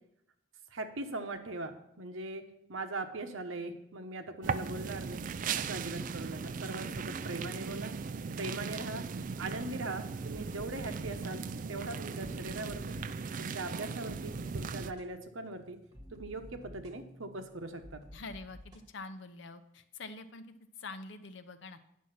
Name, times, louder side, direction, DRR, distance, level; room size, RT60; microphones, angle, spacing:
voice 1, 0.7-2.4 2.7-5.2 5.6-7.9 8.4-9.0 9.4-11.4 11.7-13.0 13.4-15.8 16.1-18.0, right 2 dB, 80° right, 7 dB, 1.0 m, -40 dB
sound 1, 4.4-14.9, right 5 dB, 40° right, 0.3 m, -38 dB
voice 2, 5.5-5.8 18.1-18.6 18.9-21.8, left 3 dB, 60° left, 10 dB, 0.7 m, -46 dB
sound 2, 10.3-18.9, equal, 20° right, 1.2 m, -53 dB
9.7 x 6.3 x 5.8 m, 0.78 s
head